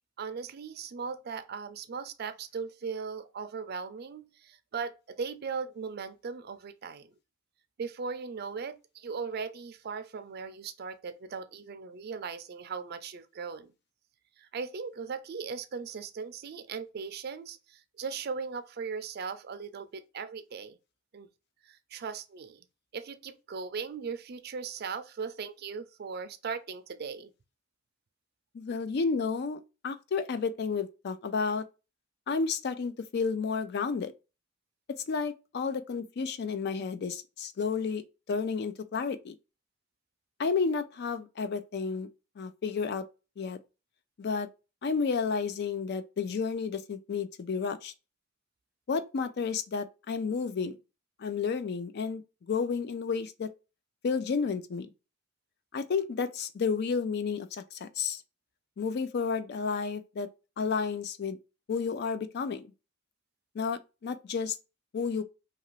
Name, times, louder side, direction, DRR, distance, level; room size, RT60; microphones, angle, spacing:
voice 1, 0.2-7.1 7.8-13.7 14.4-20.8 21.1-21.3 21.6-22.7 22.9-27.3, right 5 dB, 55° right, 0.4 m, -38 dB
voice 2, 28.5-31.6 32.3-34.1 35.1-38.0 38.3-39.3 40.4-42.1 42.4-43.0 43.4-43.6 44.2-44.5 44.8-47.9 48.9-50.7 51.2-53.5 54.0-54.9 55.7-58.2 58.8-60.3 60.6-61.4 61.7-62.7 63.5-64.6 64.9-65.2, left 5 dB, 55° left, 0.4 m, -31 dB
2.8 x 2.5 x 3.0 m
head